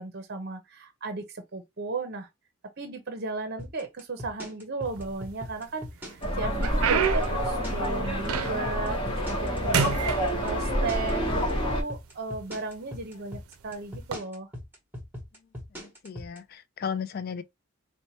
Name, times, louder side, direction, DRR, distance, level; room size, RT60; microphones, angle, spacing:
voice 1, 0.0-2.3 2.8-14.5, right 3 dB, 50° right, 0.6 m, -35 dB
sound 1, 3.6-16.4, left 1 dB, 10° right, 0.9 m, -40 dB
sound 2, 4.9-5.6 6.1-8.8 9.2-9.5 9.7-11.0 11.8-11.9 12.6-12.8 14.0-14.2, right 6 dB, 85° right, 0.5 m, -29 dB
sound 3, 6.2-11.8, equal, 25° left, 0.9 m, -28 dB
voice 2, 16.0-17.4, left 6 dB, 45° left, 0.3 m, -34 dB
4.2 x 2.2 x 2.8 m
head